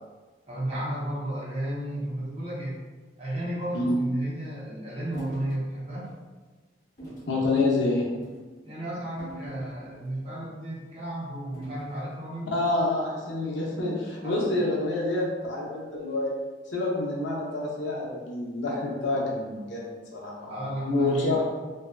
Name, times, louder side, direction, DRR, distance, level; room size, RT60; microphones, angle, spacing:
voice 1, 0.5-2.8 3.2-6.1 8.6-12.5 14.2-14.3 20.5-21.4, right 1 dB, 35° right, -7 dB, 0.8 m, -33 dB
sound 1, 5.1-5.6 6.0-6.2 7.0-7.3 8.1-8.4 9.2-10.1 11.5-12.0, right 2 dB, 45° left, 1.1 m, -42 dB
voice 2, 7.3-8.1 12.5-16.3 16.7-20.5 20.8-21.4, left 2 dB, 80° left, -3 dB, 0.6 m, -27 dB
2.7 x 2.2 x 2.3 m, 1.3 s
head